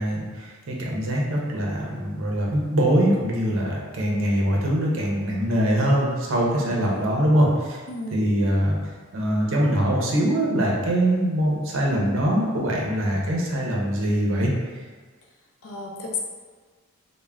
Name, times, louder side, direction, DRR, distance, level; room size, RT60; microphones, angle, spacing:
voice 1, 0.0-7.8 8.1-8.8 9.1-14.5, right 1 dB, 60° right, -2 dB, 0.5 m, -23 dB
voice 2, 6.5-7.1 7.9-8.2 15.6-16.2, left 3 dB, 70° left, -1 dB, 0.5 m, -33 dB
3.3 x 2.0 x 2.3 m, 1.4 s
head